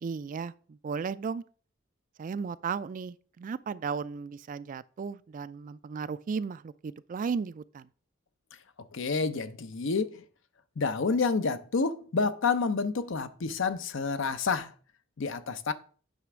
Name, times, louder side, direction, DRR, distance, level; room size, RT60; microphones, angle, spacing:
voice 1, 0.0-1.4 2.2-7.9, right 5 dB, 40° right, 0.3 m, -35 dB
voice 2, 8.9-10.2 10.8-14.7 15.2-15.7, left 4 dB, 65° left, 0.7 m, -29 dB
9.2 x 3.3 x 6.1 m
head